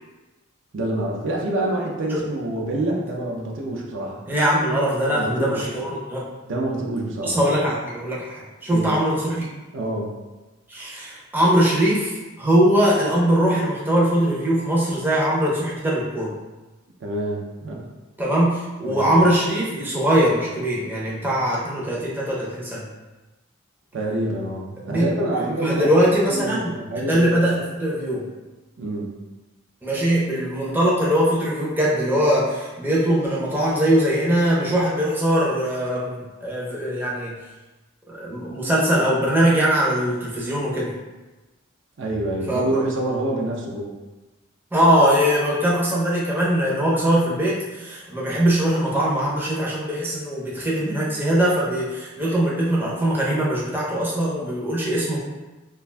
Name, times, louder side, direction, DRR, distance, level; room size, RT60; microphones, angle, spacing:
voice 1, 0.7-4.2 5.1-5.7 6.5-7.4 8.7-9.0 9.7-10.2 17.0-17.9 18.8-19.1 23.9-26.0 26.3-27.4 28.8-29.1 42.0-43.9, right 1 dB, 60° right, -2 dB, 0.4 m, -26 dB
voice 2, 4.3-6.3 7.2-9.5 10.7-16.3 18.2-22.8 24.9-25.2 25.6-28.2 29.8-37.4 38.1-40.9 42.5-42.6 44.7-55.2, right 1 dB, 10° right, -6 dB, 0.5 m, -21 dB
2.4 x 2.2 x 3.2 m, 1.1 s
head